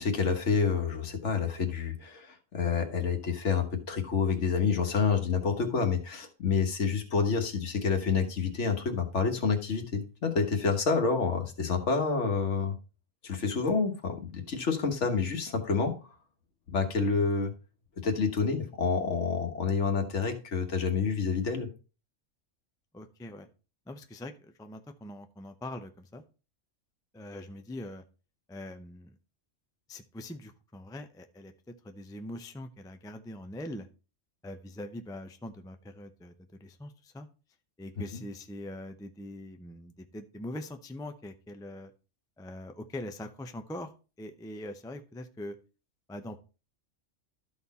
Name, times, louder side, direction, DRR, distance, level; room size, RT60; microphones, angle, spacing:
voice 1, 0.0-12.8 13.2-15.9 16.7-17.5 18.0-21.7 38.1-38.2, left 5 dB, 65° left, 5 dB, 1.6 m, -28 dB
voice 2, 22.9-23.5 23.9-26.2 27.1-28.0 28.5-29.1 29.9-33.9 34.4-36.3 36.6-37.3 37.8-41.9 42.4-43.9 44.2-45.6 46.1-46.4, left 1 dB, 5° left, 6 dB, 0.4 m, -42 dB
12.5 x 4.2 x 4.1 m, 0.33 s
omnidirectional pair, 1.3 m